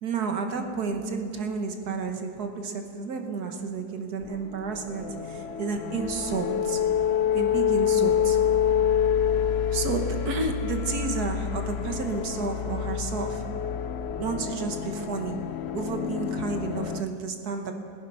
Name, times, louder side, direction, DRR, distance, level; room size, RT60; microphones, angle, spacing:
voice 1, 0.0-6.8 7.3-8.4 9.7-13.4 14.2-15.4 15.7-17.8, right 4 dB, 65° right, 5 dB, 1.6 m, -31 dB
sound 1, 4.2-17.0, left 9 dB, 80° left, 0.5 m, -27 dB
18.0 x 10.5 x 5.5 m, 2.4 s
omnidirectional pair, 1.8 m